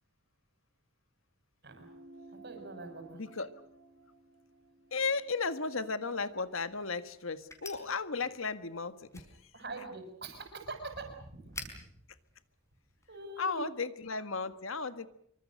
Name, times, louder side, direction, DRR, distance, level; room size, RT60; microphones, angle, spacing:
sound 1, 1.7-6.5, right 2 dB, 70° right, 4.1 m, -56 dB
voice 1, 2.3-3.2 9.5-11.9 13.1-13.7, right 3 dB, 55° right, 5 dB, 6.6 m, -44 dB
voice 2, 3.1-3.5 4.9-9.5 13.4-15.1, left 4 dB, 85° left, 11 dB, 1.6 m, -35 dB
sound 2, 6.1-13.3, left 2 dB, 15° left, 4.9 m, -52 dB
26.0 x 24.5 x 6.5 m, 0.75 s
head